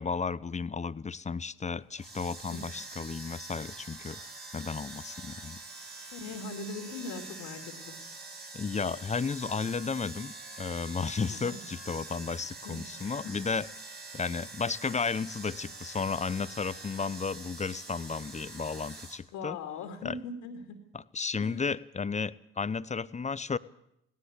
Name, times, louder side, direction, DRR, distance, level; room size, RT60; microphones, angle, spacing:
voice 1, 0.0-4.2 4.5-5.6 8.5-13.7 14.1-19.6 20.0-20.2 20.9-23.6, left 5 dB, 25° left, 18 dB, 0.7 m, -33 dB
sound 1, 1.9-19.2, right 3 dB, 35° right, 4.9 m, -45 dB
voice 2, 6.1-8.0 11.3-11.6 12.4-12.8 13.2-13.4 19.3-20.8 21.4-21.5, left 4 dB, 70° left, 5 dB, 2.6 m, -40 dB
18.0 x 18.0 x 8.3 m, 0.80 s
hypercardioid pair, 50°, 30 cm